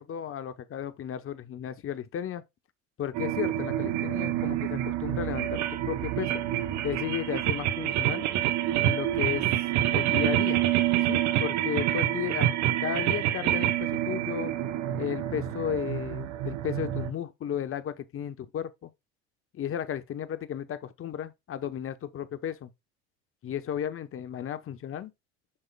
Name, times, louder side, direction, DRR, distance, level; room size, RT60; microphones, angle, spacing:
voice 1, 0.0-2.4 3.0-6.4 6.8-8.3 8.8-9.5 9.9-10.6 11.1-12.5 12.8-14.5 15.0-18.9 19.5-22.7 23.4-25.1, left 9 dB, 40° left, 1.1 m, -34 dB
sound 1, 3.1-17.1, right 12 dB, 55° right, 1.0 m, -27 dB
8.8 x 5.6 x 2.3 m
hypercardioid pair, 75°, 34 cm